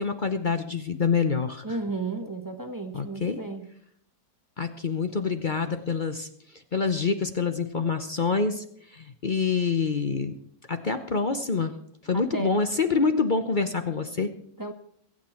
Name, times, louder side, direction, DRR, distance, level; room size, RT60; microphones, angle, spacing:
voice 1, 0.0-1.8 2.9-3.4 4.6-6.3 6.7-8.6 8.9-10.3 10.7-11.7 12.0-14.3, left 5 dB, 45° left, 8 dB, 0.6 m, -26 dB
voice 2, 1.6-3.6 12.1-12.6 14.6-14.7, right 3 dB, 15° right, 6 dB, 1.1 m, -33 dB
23.0 x 9.0 x 4.4 m, 0.66 s
omnidirectional pair, 2.0 m